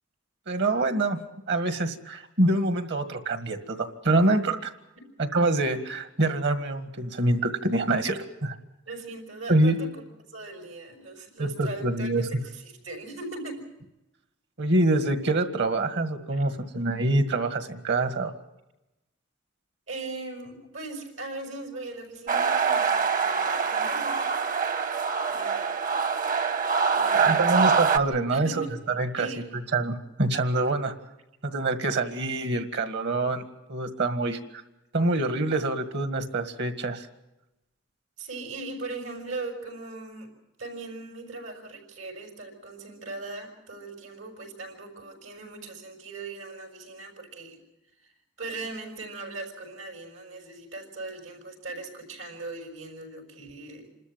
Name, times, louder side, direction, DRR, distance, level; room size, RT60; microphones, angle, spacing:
voice 1, 0.5-1.2 1.5-4.7 5.2-8.6 9.5-9.8 11.4-12.3 14.6-18.3 27.1-28.7 29.0-29.3 29.7-30.9 31.4-33.4 33.7-34.4 34.9-37.1, right 2 dB, 65° right, 9 dB, 1.8 m, -25 dB
voice 2, 8.9-10.0 10.3-13.7 16.3-16.4 19.9-24.2 25.3-25.9 26.9-27.7 28.3-28.7 29.1-29.4 38.2-40.3 40.6-47.6 48.0-48.1 48.4-53.9, right 3 dB, 85° right, 3 dB, 6.0 m, -39 dB
sound 1, 22.3-28.0, right 5 dB, 45° right, 1.0 m, -24 dB
27.0 x 13.5 x 9.0 m, 0.96 s
head